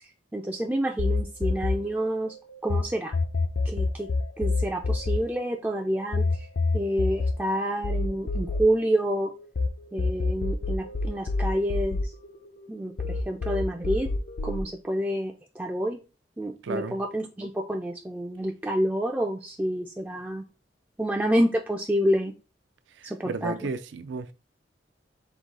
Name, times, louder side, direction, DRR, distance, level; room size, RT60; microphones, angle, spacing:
voice 1, 0.3-2.3 2.6-3.1 3.7-4.1 4.4-6.4 6.7-9.3 9.9-12.1 12.7-14.1 14.4-16.0 16.4-20.4 21.0-22.3 23.0-23.5, equal, 10° right, 0.3 m, -28 dB
sound 1, 1.0-2.8 3.1-9.7 10.0-12.7 13.0-14.6, left 3 dB, 60° left, 0.5 m, -27 dB
voice 2, 16.6-17.0 23.0-24.3, right 4 dB, 80° right, 0.4 m, -33 dB
3.8 x 2.3 x 4.6 m
head